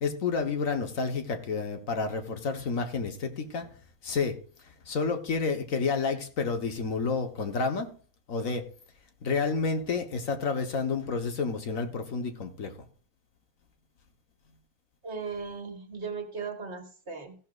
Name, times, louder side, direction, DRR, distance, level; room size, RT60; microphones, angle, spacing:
voice 1, 0.0-3.7 4.0-4.4 4.9-7.9 8.3-8.6 9.2-12.7, left 4 dB, 65° left, 6 dB, 1.5 m, -30 dB
voice 2, 15.0-17.4, right 5 dB, 50° right, 5 dB, 1.7 m, -37 dB
15.0 x 11.5 x 2.4 m, 0.42 s
omnidirectional pair, 1.5 m